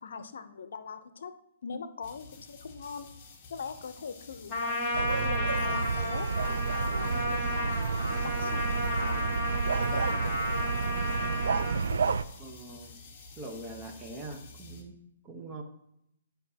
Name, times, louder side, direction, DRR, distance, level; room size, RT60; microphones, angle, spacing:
voice 1, 0.0-1.3 1.6-3.1 3.5-6.3 6.8-10.9 11.7-12.2, left 5 dB, 75° left, 11 dB, 0.6 m, -41 dB
sound 1, 2.0-14.8, left 4 dB, 30° left, 1.3 m, -50 dB
Trumpet, 4.5-11.8, left 1 dB, 10° left, 1.6 m, -33 dB
sound 2, 4.9-12.2, right 5 dB, 80° right, 0.4 m, -30 dB
voice 2, 12.4-13.0 13.4-14.9 15.2-15.6, right 2 dB, 20° right, 4 dB, 0.9 m, -43 dB
11.0 x 5.2 x 2.8 m, 0.77 s
hypercardioid pair, 155°, 0 cm